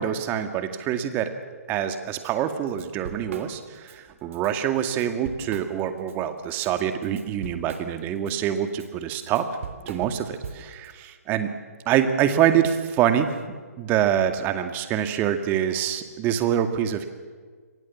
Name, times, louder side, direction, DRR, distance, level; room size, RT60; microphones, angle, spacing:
voice 1, 0.0-1.3 1.7-9.5 9.8-11.5 11.9-13.3 13.8-17.1, right 10 dB, 20° right, 8 dB, 2.1 m, -25 dB
Drum kit / Drum, 2.2-2.3 2.7-4.0 4.3-4.5 4.9-6.1 6.5-10.9, right 6 dB, 55° right, 3.3 m, -40 dB
28.5 x 23.0 x 7.4 m, 1.5 s
figure-of-eight pair, 140°, 9 cm